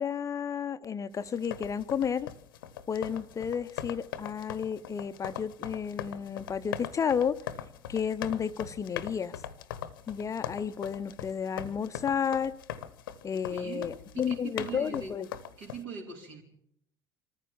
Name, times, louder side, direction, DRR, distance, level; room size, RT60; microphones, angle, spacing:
voice 1, 0.0-2.3 2.9-7.4 7.9-9.4 10.1-12.6 13.2-15.3, left 7 dB, 25° left, 12 dB, 0.7 m, -32 dB
sound 1, 1.3-15.8, left 10 dB, 70° left, 1.0 m, -41 dB
voice 2, 13.5-15.2 15.6-16.4, right 5 dB, 60° right, 1 dB, 4.4 m, -42 dB
25.0 x 14.5 x 7.4 m, 0.73 s
figure-of-eight pair, 65°, 12 cm